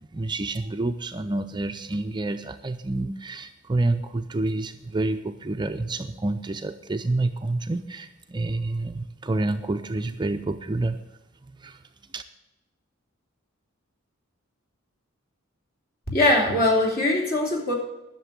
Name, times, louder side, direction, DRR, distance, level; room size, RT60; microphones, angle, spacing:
voice 1, 0.1-11.0 11.6-11.8 12.1-12.2, right 2 dB, 20° right, 7 dB, 0.5 m, -28 dB
voice 2, 16.1-17.8, left 1 dB, 45° left, -1 dB, 3.0 m, -21 dB
11.5 x 6.8 x 8.6 m, 0.99 s
head